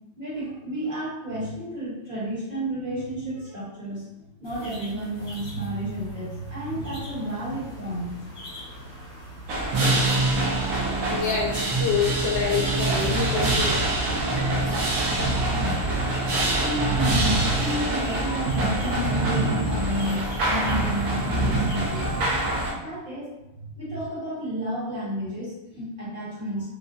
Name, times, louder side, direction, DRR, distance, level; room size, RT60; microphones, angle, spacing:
voice 1, 0.2-4.0 4.4-8.2 8.8-8.9 16.6-22.2 22.8-23.3 23.6-26.7, right 1 dB, 30° right, -10 dB, 1.4 m, -31 dB
sound 1, 4.4-21.8, right 2 dB, 35° left, 1.4 m, -40 dB
sound 2, 9.5-22.7, right 2 dB, 75° right, 1.7 m, -24 dB
voice 2, 11.1-13.7, left 5 dB, 75° left, 0 dB, 1.1 m, -26 dB
5.5 x 2.4 x 2.6 m, 0.98 s
omnidirectional pair, 2.3 m